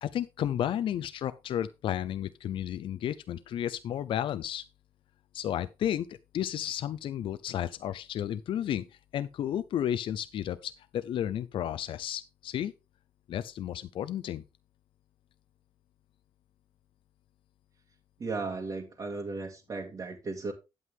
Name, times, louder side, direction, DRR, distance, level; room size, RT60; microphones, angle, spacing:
voice 1, 0.0-4.6 5.3-8.9 9.1-12.7 13.3-14.4, left 10 dB, 70° left, 0.5 m, -32 dB
voice 2, 18.2-20.5, right 3 dB, 40° right, 2.1 m, -36 dB
9.4 x 8.2 x 3.6 m
cardioid pair, 90°, 9 cm